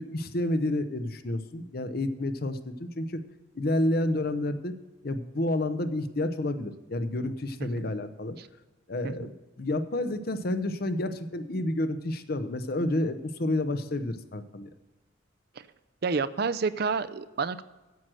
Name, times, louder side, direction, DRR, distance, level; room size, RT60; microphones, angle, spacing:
voice 1, 0.0-3.2 3.5-4.7 5.0-8.4 8.9-9.3 9.6-14.7, left 1 dB, 50° left, 11 dB, 0.8 m, -30 dB
voice 2, 16.0-17.6, right 4 dB, 55° right, 14 dB, 0.5 m, -30 dB
9.3 x 7.6 x 6.2 m, 1.2 s
head